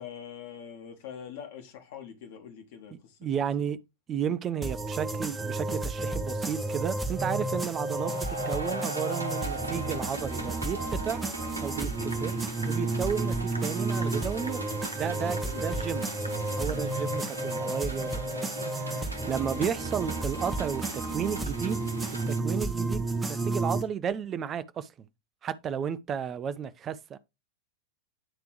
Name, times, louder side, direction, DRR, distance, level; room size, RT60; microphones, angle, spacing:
voice 1, 0.0-3.2 15.2-15.7 16.6-16.9, left 8 dB, 50° left, 1.7 m, -44 dB
voice 2, 3.2-3.8 4.1-11.2 11.6-12.4 12.7-14.6 14.9-16.0 16.6-21.8 22.3-25.1 25.4-27.2, right 8 dB, 25° right, 0.5 m, -33 dB
sound 1, 4.6-23.8, right 2 dB, 10° right, 1.0 m, -32 dB
sound 2, 6.5-22.4, right 2 dB, 80° right, 1.0 m, -40 dB
9.8 x 3.4 x 3.1 m
figure-of-eight pair, 90°, 0 cm